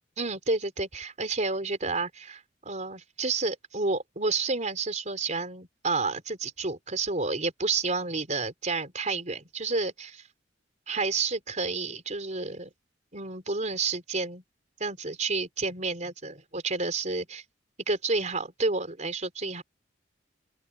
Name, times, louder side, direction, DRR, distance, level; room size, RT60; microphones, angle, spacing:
voice 1, 0.2-10.2 10.9-12.7 13.1-14.4 14.8-17.4 17.9-19.6, right 3 dB, 40° right, 4.4 m, -30 dB
open air
head